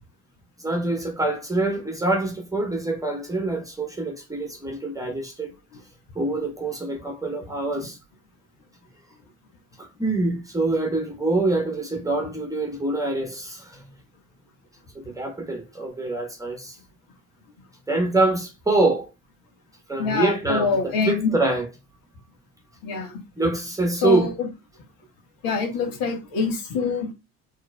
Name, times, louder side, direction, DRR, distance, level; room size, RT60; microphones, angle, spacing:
voice 1, 0.6-5.5 6.1-8.0 10.0-13.8 15.1-16.7 17.9-19.1 19.9-21.7 23.4-24.3, right 2 dB, 10° right, 1.4 m, -25 dB
voice 2, 20.0-21.3 22.8-23.2 24.0-24.5 25.4-27.1, left 5 dB, 55° left, 1.9 m, -25 dB
6.4 x 3.2 x 2.4 m
figure-of-eight pair, 55°, 43 cm